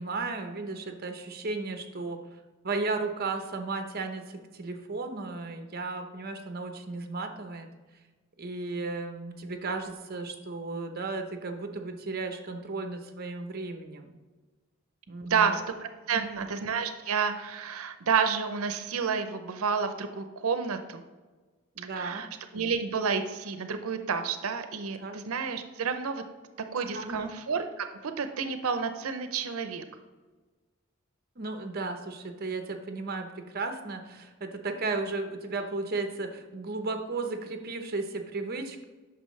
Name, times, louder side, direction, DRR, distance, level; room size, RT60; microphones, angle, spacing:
voice 1, 0.0-2.2 2.6-7.7 8.4-14.1 15.1-15.6 16.1-16.4 21.8-22.2 25.0-25.2 26.9-27.3 31.4-33.3 33.5-38.8, right 3 dB, 45° right, 6 dB, 0.8 m, -34 dB
voice 2, 15.3-21.0 22.0-22.3 22.5-26.2 26.7-29.8, right 6 dB, 90° right, 8 dB, 0.6 m, -30 dB
9.0 x 6.0 x 3.2 m, 1.3 s
head